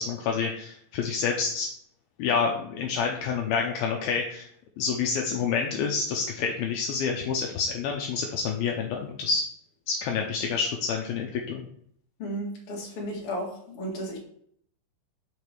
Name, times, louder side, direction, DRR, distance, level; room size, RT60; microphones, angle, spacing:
voice 1, 0.0-1.7 2.2-4.5 4.8-9.5 9.9-11.7, left 5 dB, 80° left, 1 dB, 2.3 m, -28 dB
voice 2, 12.2-13.5 13.7-14.2, equal, 45° left, -2 dB, 2.1 m, -33 dB
7.3 x 5.1 x 4.6 m, 0.65 s
omnidirectional pair, 4.8 m